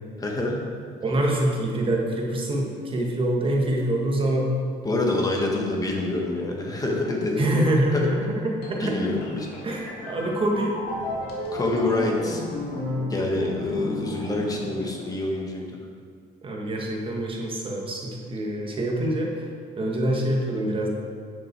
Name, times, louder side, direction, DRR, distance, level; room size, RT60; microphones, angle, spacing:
voice 1, 0.2-0.6 4.8-7.6 7.9-8.1 8.8-9.5 11.5-12.4 13.1-15.8, left 2 dB, 20° left, 0 dB, 1.6 m, -26 dB
voice 2, 1.0-4.6 7.4-9.1 9.6-10.7 16.4-19.4 19.8-20.9, right 1 dB, 30° right, -1 dB, 1.6 m, -25 dB
sound 1, 8.6-15.3, left 1 dB, 80° left, 1.9 m, -33 dB
9.3 x 6.2 x 4.6 m, 2.1 s
cardioid pair, 110°, 17 cm